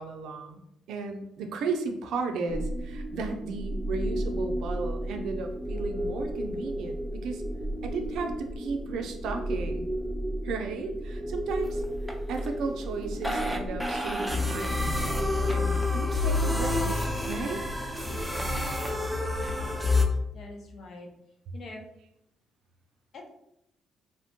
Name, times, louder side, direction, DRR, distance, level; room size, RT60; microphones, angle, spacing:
voice 1, 0.0-7.4 7.8-9.9 10.4-11.8 12.3-17.6, right 4 dB, 80° right, 5 dB, 0.4 m, -35 dB
sound 1, 2.5-20.1, left 1 dB, 5° right, 0.4 m, -30 dB
voice 2, 18.0-18.4 20.3-21.1 21.5-21.8 23.1-23.3, left 2 dB, 60° left, 2 dB, 0.6 m, -44 dB
3.0 x 2.1 x 2.9 m, 0.81 s
cardioid pair, 90°, 0 cm